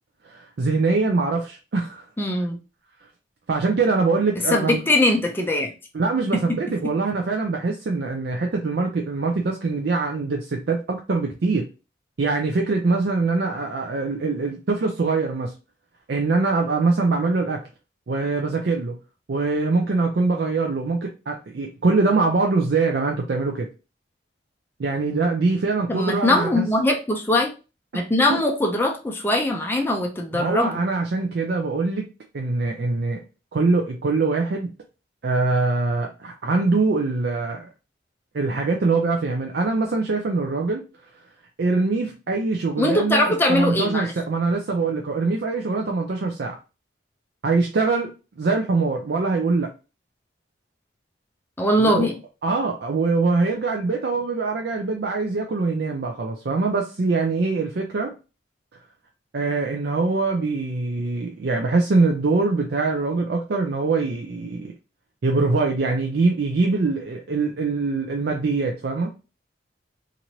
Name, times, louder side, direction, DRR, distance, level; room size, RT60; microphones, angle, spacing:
voice 1, 0.2-2.0 3.5-4.8 5.9-11.7 12.2-15.5 16.1-17.6 18.1-19.0 19.3-23.7 24.8-26.7 28.3-28.4 30.3-32.1 32.3-33.2 33.5-34.7 35.2-37.7 38.3-40.8 41.6-46.6 47.4-49.7 51.8-52.1 52.4-58.1 59.3-64.7 65.2-69.1, right 3 dB, 55° right, 0.4 m, -23 dB
voice 2, 2.2-2.6 4.5-5.7 6.3-6.4 25.9-27.5 27.9-30.8 42.8-44.1 51.6-52.2, left 1 dB, 10° left, 0.4 m, -21 dB
2.9 x 2.6 x 2.9 m
head